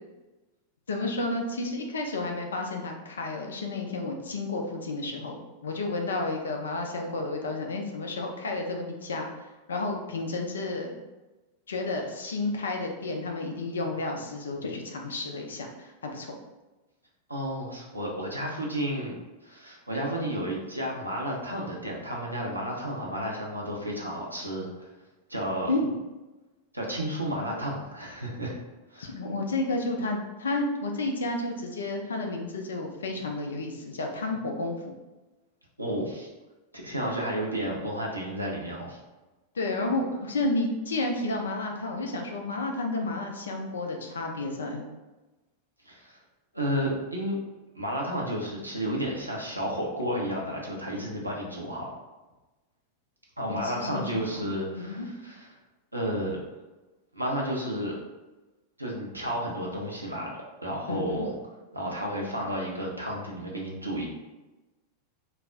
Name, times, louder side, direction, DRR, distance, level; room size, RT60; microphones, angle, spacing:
voice 1, 0.9-11.0 11.7-16.3 25.7-26.0 29.0-34.9 39.5-44.8 53.5-54.5 54.8-55.1 60.9-61.3, left 2 dB, 70° left, 2 dB, 0.4 m, -31 dB
voice 2, 17.3-24.9 25.3-25.7 26.7-28.6 28.9-29.1 35.8-36.3 36.7-39.0 45.9-46.2 46.5-47.4 47.7-51.9 53.4-55.4 55.9-56.4 57.1-58.0 58.8-60.3 60.6-61.3 61.7-64.1, equal, 85° right, -2 dB, 0.6 m, -32 dB
2.4 x 2.0 x 3.5 m, 1.1 s
figure-of-eight pair, 90°, 0 cm